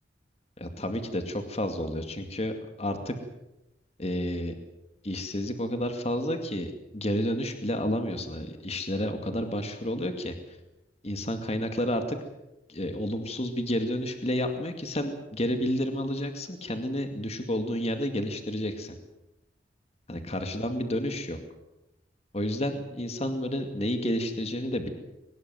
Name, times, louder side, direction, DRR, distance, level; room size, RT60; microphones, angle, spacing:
voice 1, 0.6-3.1 4.0-4.5 5.0-10.3 11.0-12.2 12.7-18.9 20.1-21.4 22.3-24.9, equal, 35° left, 6 dB, 2.3 m, -30 dB
23.0 x 20.0 x 7.6 m, 0.92 s
head